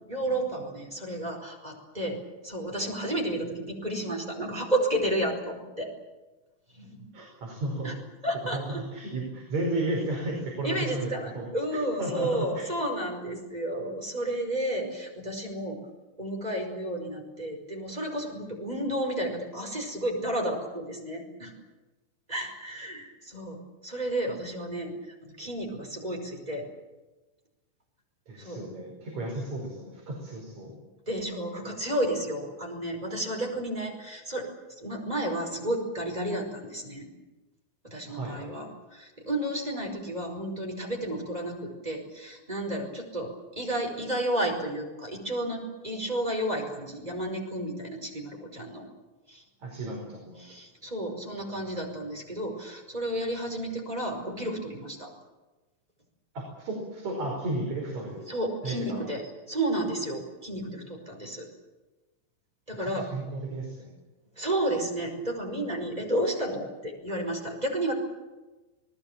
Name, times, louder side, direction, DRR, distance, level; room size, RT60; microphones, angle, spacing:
voice 1, 0.1-5.9 6.7-7.1 7.8-8.0 8.2-8.8 10.6-15.8 16.2-21.5 22.3-26.7 28.4-28.6 31.1-34.5 34.8-37.1 37.8-48.8 49.3-49.4 50.4-55.1 58.3-61.5 62.7-63.1 64.4-67.9, right 1 dB, 10° right, 1 dB, 4.9 m, -32 dB
voice 2, 7.1-7.9 8.5-11.5 12.0-12.6 28.3-30.8 38.1-38.7 49.6-50.4 56.3-58.3 58.6-59.0 62.8-63.9, right 2 dB, 50° right, -1 dB, 6.4 m, -33 dB
28.0 x 19.5 x 7.5 m, 1.2 s
omnidirectional pair, 4.2 m